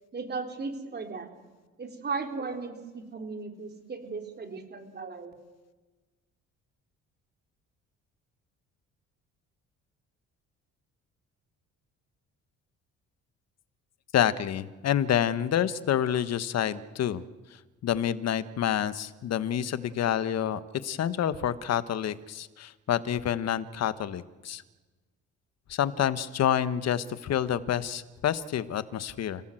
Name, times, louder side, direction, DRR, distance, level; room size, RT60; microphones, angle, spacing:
voice 1, 0.1-1.4 1.8-5.3, right 4 dB, 35° right, 4 dB, 4.0 m, -36 dB
voice 2, 14.1-17.2 17.8-24.6 25.7-29.4, left 10 dB, 60° left, 13 dB, 1.4 m, -28 dB
29.5 x 17.5 x 7.8 m, 1.3 s
cardioid pair, 100°, 29 cm